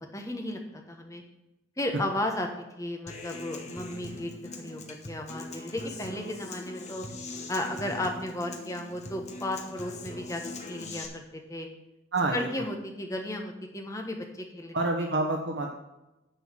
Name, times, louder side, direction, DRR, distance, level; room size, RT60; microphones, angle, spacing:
voice 1, 0.1-1.2 1.8-2.5 2.8-4.3 4.6-7.0 7.5-10.4 10.7-11.7 12.3-14.7, left 1 dB, 15° left, 3 dB, 1.2 m, -34 dB
Human voice / Acoustic guitar, 3.1-11.1, left 2 dB, 35° left, 1.1 m, -41 dB
voice 2, 12.1-12.5 14.7-15.7, right 2 dB, 70° right, 3 dB, 0.9 m, -28 dB
10.0 x 4.5 x 7.2 m, 0.97 s
head